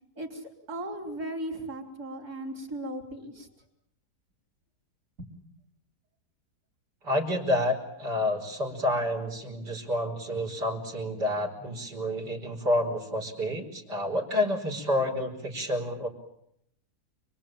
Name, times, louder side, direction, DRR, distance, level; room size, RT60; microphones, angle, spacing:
voice 1, 0.2-3.5 5.2-5.3, right 1 dB, 60° right, 3 dB, 5.3 m, -37 dB
voice 2, 7.0-16.1, left 1 dB, 85° right, 1 dB, 5.4 m, -29 dB
30.0 x 22.5 x 9.0 m, 0.77 s
omnidirectional pair, 1.8 m